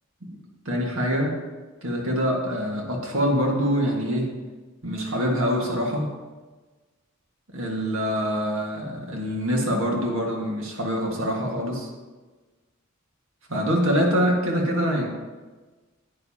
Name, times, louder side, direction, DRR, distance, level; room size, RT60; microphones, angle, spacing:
voice 1, 0.6-1.4 1.8-4.3 4.8-6.1 7.5-11.9 13.5-15.1, equal, 75° right, 0 dB, 1.7 m, -25 dB
9.5 x 9.4 x 2.8 m, 1.3 s
head